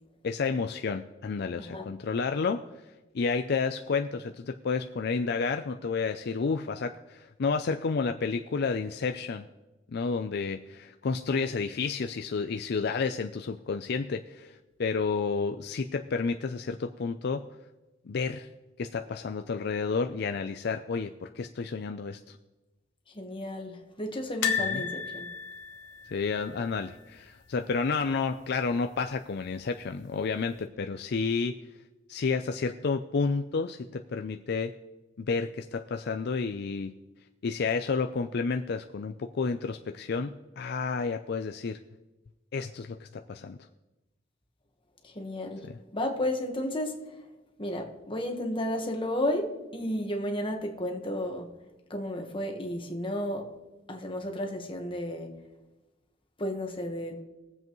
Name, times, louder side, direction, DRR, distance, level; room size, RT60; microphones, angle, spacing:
voice 1, 0.2-2.6 3.1-9.5 9.9-17.4 18.1-18.5 18.8-22.4 24.6-24.8 26.1-31.5 32.1-34.7 35.2-36.9 37.4-41.8 42.5-43.6 45.6-45.7, left 4 dB, 60° left, 6 dB, 0.4 m, -30 dB
voice 2, 23.1-25.3 45.0-47.2 47.6-51.5 51.9-53.5 53.9-55.4 56.4-57.2, left 1 dB, 30° left, 3 dB, 1.3 m, -33 dB
sound 1, 24.4-27.5 27.7-27.9 28.2-28.3 29.5-30.1 30.6-30.7, left 7 dB, 85° left, 1.1 m, -33 dB
21.0 x 7.7 x 3.1 m, 1.1 s
head